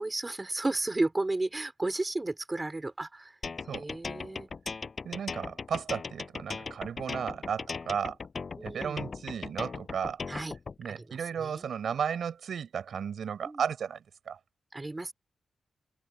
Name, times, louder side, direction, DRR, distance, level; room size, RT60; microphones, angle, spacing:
voice 1, 0.0-3.4 3.7-4.5 8.6-9.1 10.3-10.5 11.0-11.7 13.4-13.6 14.7-15.1, right 2 dB, 15° right, 4.2 m, -33 dB
sound 1, 3.4-10.7, left 4 dB, 40° left, 5.3 m, -38 dB
voice 2, 5.0-8.2 8.6-10.2 10.8-14.4, right 7 dB, 75° right, 5.0 m, -34 dB
wide cardioid pair, 160°, 0 cm